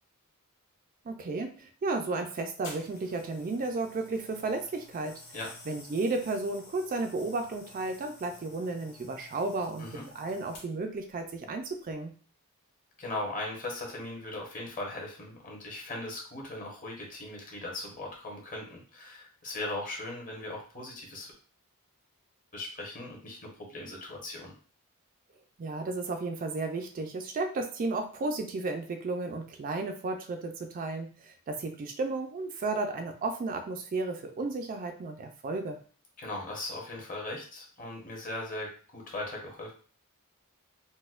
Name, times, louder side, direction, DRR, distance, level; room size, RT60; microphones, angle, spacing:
voice 1, 1.0-5.2 5.7-9.9 10.1-12.1 25.6-35.8, right 3 dB, 40° right, 4 dB, 0.4 m, -33 dB
sound 1, 2.6-11.0 11.7-11.9, left 2 dB, 55° left, 1.6 m, -51 dB
voice 2, 13.0-21.3 22.5-24.5 36.2-39.7, left 2 dB, 35° left, -1 dB, 1.0 m, -39 dB
4.0 x 2.1 x 2.4 m, 0.40 s
head